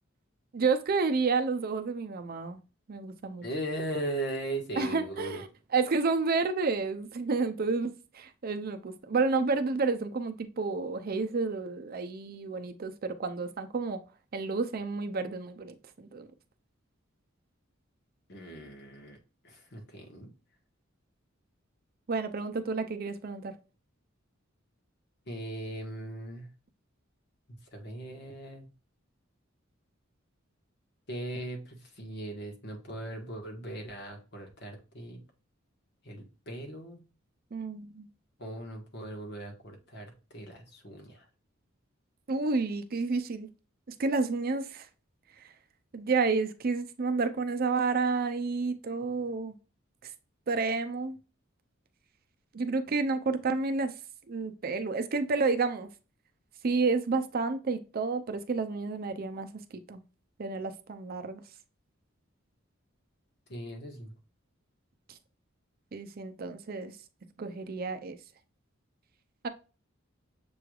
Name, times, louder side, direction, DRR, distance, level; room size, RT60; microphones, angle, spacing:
voice 1, 0.5-2.6 2.9-3.4 4.8-5.5 5.7-14.0 14.3-16.3 22.1-23.5 37.5-38.1 42.3-43.5 43.9-44.9 45.9-49.5 50.5-51.2 52.5-53.9 54.3-55.9 56.6-59.5 59.9-60.0 60.4-61.4 65.9-66.9 67.4-68.2 69.4-69.5, right 4 dB, 50° right, 0.5 m, -30 dB
voice 2, 3.4-5.4 18.3-19.2 19.4-20.3 25.3-26.5 27.7-28.7 31.1-35.2 36.0-37.0 38.4-41.2 63.5-64.1, right 1 dB, 55° left, 1.3 m, -38 dB
6.8 x 3.1 x 2.3 m
head